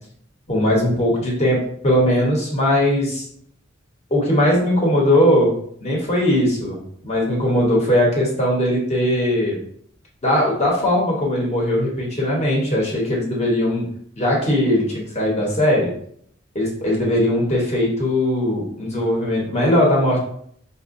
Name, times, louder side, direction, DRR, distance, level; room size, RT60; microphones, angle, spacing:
voice 1, 0.5-1.6 1.8-3.3 4.1-5.5 5.8-6.8 7.0-9.6 10.2-13.8 14.2-15.9 16.5-20.2, left 1 dB, 35° left, -3 dB, 1.0 m, -19 dB
5.4 x 2.1 x 2.5 m, 0.65 s
head